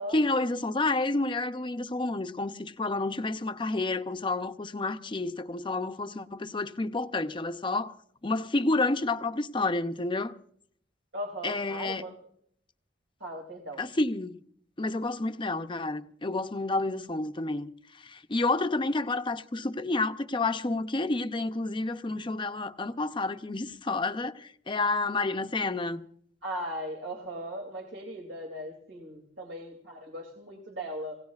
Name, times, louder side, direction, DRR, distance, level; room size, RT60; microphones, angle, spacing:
voice 1, 0.1-7.9 8.2-10.3 11.4-12.0 13.8-14.3 14.8-17.7 18.0-26.0, left 2 dB, 25° left, 0.7 m, -30 dB
voice 2, 11.1-12.1 13.2-13.8 26.4-31.1, equal, 75° right, 2.8 m, -38 dB
28.5 x 17.5 x 2.4 m
head